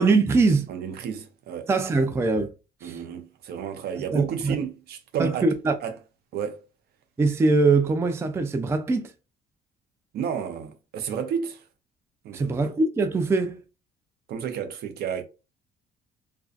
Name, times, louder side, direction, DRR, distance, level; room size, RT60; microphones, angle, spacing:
voice 1, 0.0-0.7 1.7-2.5 2.8-3.0 4.1-4.6 5.2-5.7 7.2-9.1 12.3-13.6, right 3 dB, 15° right, 0.3 m, -22 dB
voice 2, 0.7-1.7 2.8-5.5 5.8-5.9 6.3-6.6 10.1-11.6 12.2-12.6 14.3-15.2, right 8 dB, 70° right, 0.6 m, -31 dB
2.4 x 2.3 x 2.4 m
cardioid pair, 110°, 17 cm